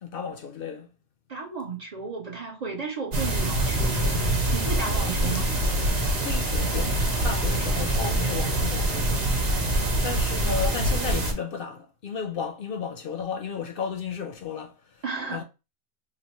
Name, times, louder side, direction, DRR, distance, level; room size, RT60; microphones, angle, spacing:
voice 1, 0.0-0.9 4.6-5.2 6.2-9.3 10.0-15.0 15.3-15.4, left 6 dB, 60° left, 0.7 m, -34 dB
voice 2, 1.3-3.9 4.5-5.5 9.8-10.1 15.0-15.4, right 4 dB, 45° right, 0.7 m, -33 dB
sound 1, 3.1-11.3, right 1 dB, 65° right, 1.2 m, -25 dB
sound 2, 3.6-8.7, left 6 dB, 85° left, 0.9 m, -40 dB
3.0 x 2.1 x 4.0 m
omnidirectional pair, 1.1 m